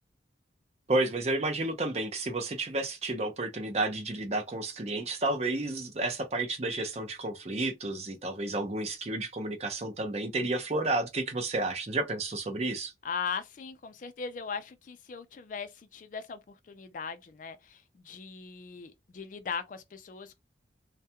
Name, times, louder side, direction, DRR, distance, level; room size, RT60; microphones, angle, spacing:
voice 1, 0.9-12.9, right 2 dB, 35° right, 0.5 m, -31 dB
voice 2, 13.0-20.4, left 6 dB, 45° left, 0.3 m, -39 dB
2.3 x 2.1 x 2.7 m
head